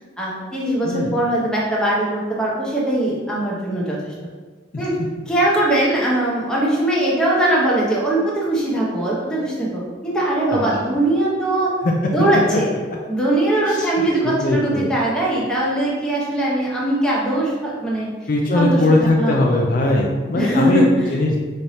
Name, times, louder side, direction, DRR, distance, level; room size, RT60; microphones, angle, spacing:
voice 1, 0.2-4.1 4.8-4.9 5.3-11.7 12.1-12.7 13.1-18.1 18.5-19.4 20.4-21.2, right 1 dB, 5° left, -6 dB, 1.0 m, -20 dB
voice 2, 0.8-1.2 4.7-4.8 10.5-10.8 11.8-11.9 13.7-13.9 14.4-14.9 18.3-20.8 21.1-21.4, left 2 dB, 50° left, -1 dB, 0.5 m, -19 dB
5.4 x 3.2 x 2.8 m, 1.4 s
head